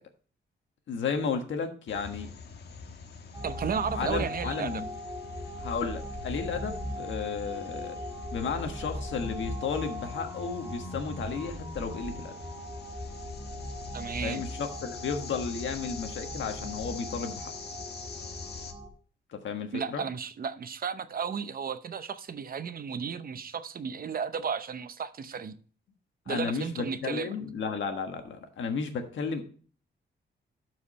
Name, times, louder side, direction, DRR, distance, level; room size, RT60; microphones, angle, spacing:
voice 1, 0.9-2.3 3.9-4.9 5.6-8.0 8.3-12.3 14.2-17.5 19.3-20.0 26.3-29.4, left 5 dB, 80° left, 1.5 m, -33 dB
sound 1, 1.9-18.7, left 5 dB, 60° left, 1.3 m, -45 dB
sound 2, 3.3-18.9, left 1 dB, 10° right, 2.3 m, -39 dB
voice 2, 3.4-4.8 13.9-14.5 19.7-25.6 26.3-27.4, right 6 dB, 50° right, 0.7 m, -34 dB
12.5 x 4.9 x 4.2 m
wide cardioid pair, 120°, 19 cm